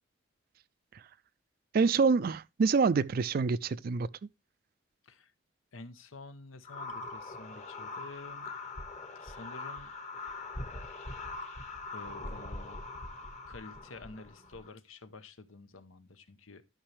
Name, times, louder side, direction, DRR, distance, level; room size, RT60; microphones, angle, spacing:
voice 1, 1.7-4.1, right 4 dB, 45° right, 0.3 m, -26 dB
voice 2, 5.7-8.5 9.1-9.9 11.0-11.1 11.9-12.8 13.5-16.6, left 3 dB, 90° left, 1.0 m, -49 dB
sound 1, 6.6-14.7, left 2 dB, 35° left, 1.1 m, -42 dB
12.0 x 5.4 x 3.3 m
head